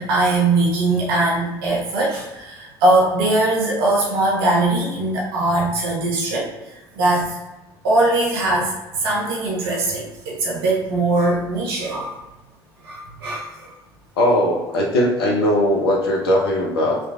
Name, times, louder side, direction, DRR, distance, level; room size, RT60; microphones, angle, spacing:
voice 1, 0.0-7.4 7.8-12.1 12.8-13.7, right 2 dB, 65° right, -3 dB, 0.8 m, -21 dB
voice 2, 14.2-17.0, left 1 dB, 75° left, -1 dB, 0.8 m, -19 dB
3.9 x 3.2 x 2.3 m, 1.1 s
figure-of-eight pair, 65°, 13 cm